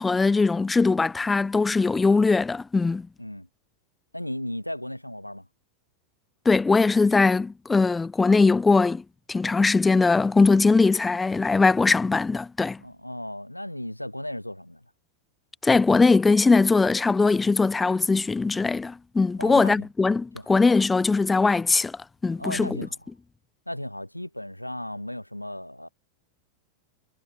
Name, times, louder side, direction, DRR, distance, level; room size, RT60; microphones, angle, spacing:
voice 1, 0.0-3.1 6.5-9.0 9.3-12.8 15.6-22.8, left 4 dB, 10° left, 0.6 m, -21 dB
voice 2, 4.1-5.5 12.8-14.8 19.4-19.9 20.3-20.5 22.4-23.1 23.7-25.9, left 1 dB, 90° left, 2.2 m, -35 dB
figure-of-eight pair, 90°, 0 cm